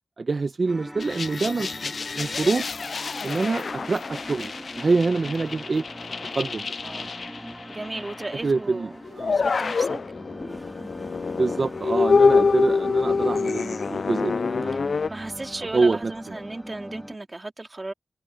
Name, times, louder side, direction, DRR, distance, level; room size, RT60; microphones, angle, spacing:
voice 1, 0.2-2.7 3.2-5.8 6.3-6.7 8.4-8.9 9.2-9.4 11.4-14.9 15.7-16.1, right 3 dB, 65° right, 0.9 m, -25 dB
sound 1, 0.7-17.2, equal, 5° right, 2.4 m, -41 dB
sound 2, 1.0-8.4 9.0-15.1, left 4 dB, 75° left, 0.3 m, -26 dB
voice 2, 6.8-7.1 7.7-10.0 14.7-14.8 15.1-17.9, right 2 dB, 40° right, 2.9 m, -36 dB
Toilet flush, 9.9-16.0, left 1 dB, 20° left, 3.5 m, -50 dB
cardioid pair, 45°, 0 cm